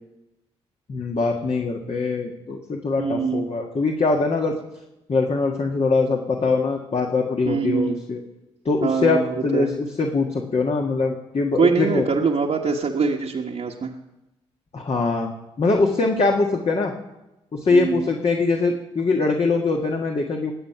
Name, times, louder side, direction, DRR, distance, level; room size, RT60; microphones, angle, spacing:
voice 1, 0.9-4.6 5.1-8.2 8.6-12.0 14.7-16.9 17.5-20.5, left 3 dB, 45° left, 1 dB, 1.7 m, -22 dB
voice 2, 3.0-3.4 7.4-8.0 8.8-9.7 11.6-13.9 17.7-18.0, right 5 dB, 55° right, -2 dB, 1.3 m, -23 dB
20.5 x 7.9 x 5.8 m, 0.96 s
hypercardioid pair, 40°, 14 cm